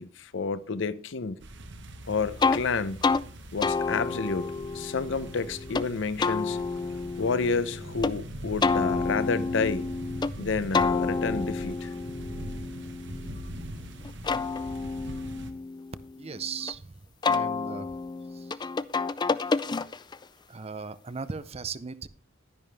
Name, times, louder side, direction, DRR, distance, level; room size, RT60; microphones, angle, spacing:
voice 1, 0.0-1.4 2.1-3.0 3.5-6.6 7.2-9.9 10.4-11.9, left 4 dB, 65° left, 0.6 m, -30 dB
sound 1, 1.4-15.5, right 1 dB, 60° right, 1.3 m, -41 dB
sound 2, 2.4-2.6 3.0-3.2 3.6-5.9 6.2-8.1 8.6-10.3 10.7-13.6 14.0-16.7 17.2-20.2, left 4 dB, 20° left, 0.3 m, -29 dB
sound 3, 4.1-4.3 5.7-5.8 7.2-7.4 8.7-8.9 10.3-10.4 11.8-12.0 13.3-13.5 15.1-15.2 16.6-16.7, right 3 dB, 80° right, 3.2 m, -59 dB
voice 2, 16.2-17.0 17.3-17.9 18.3-18.7 20.5-22.1, right 5 dB, 30° right, 0.5 m, -37 dB
11.0 x 10.5 x 3.4 m
head